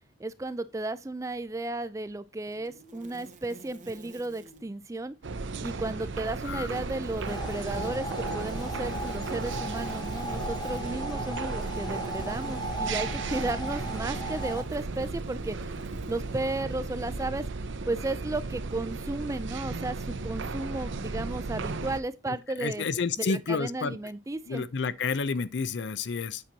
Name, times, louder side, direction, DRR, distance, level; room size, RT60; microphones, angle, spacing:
voice 1, 0.2-5.2 5.6-17.4 17.9-22.8 23.2-24.6, right 2 dB, 15° right, 0.4 m, -34 dB
sound 1, 2.4-4.7 6.0-17.1, right 2 dB, 40° right, 0.8 m, -50 dB
sound 2, 5.2-22.0, right 3 dB, 75° right, 0.6 m, -35 dB
sound 3, 7.2-14.6, right 1 dB, 20° left, 0.8 m, -36 dB
voice 2, 22.6-24.0 24.5-26.4, left 5 dB, 65° left, 0.5 m, -30 dB
8.5 x 5.9 x 2.8 m
head